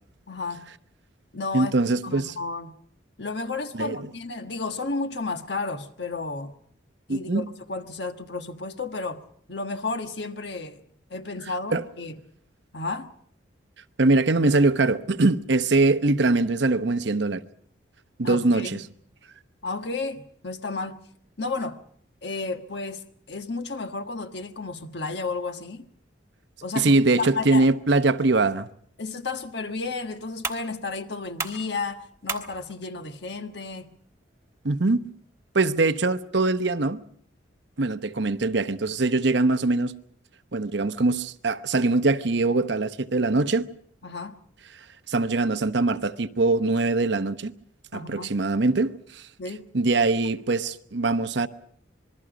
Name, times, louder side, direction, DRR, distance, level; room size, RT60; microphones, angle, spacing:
voice 1, 0.3-0.7 1.3-1.7 2.0-2.7 3.2-6.6 7.1-9.2 9.5-10.8 11.1-12.2 12.7-13.1 18.2-18.8 19.6-21.0 21.4-21.8 22.2-25.8 26.6-27.7 29.0-33.8 44.0-44.3 47.9-48.3 49.4-49.7, left 3 dB, 60° left, 1.4 m, -32 dB
voice 2, 1.5-2.3 3.7-4.1 7.1-7.4 11.7-11.8 14.0-17.4 18.2-18.8 26.7-28.7 34.6-35.0 35.5-37.0 37.8-39.9 40.5-43.7 45.1-47.5 47.9-49.2 49.7-51.5, right 3 dB, 65° right, 0.9 m, -22 dB
sound 1, 28.9-35.9, right 4 dB, 15° right, 1.4 m, -40 dB
27.0 x 21.5 x 5.1 m
head